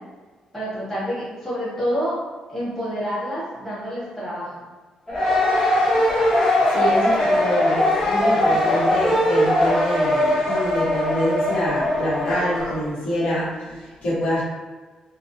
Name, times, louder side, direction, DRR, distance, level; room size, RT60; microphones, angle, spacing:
voice 1, 0.5-2.2 2.5-4.5, equal, 5° left, -12 dB, 1.3 m, -28 dB
sound 1, 5.1-12.8, left 1 dB, 25° left, 0.8 m, -20 dB
voice 2, 6.7-14.4, equal, 65° left, -9 dB, 1.2 m, -26 dB
3.5 x 2.2 x 2.7 m, 1.4 s
wide cardioid pair, 170°, 2 cm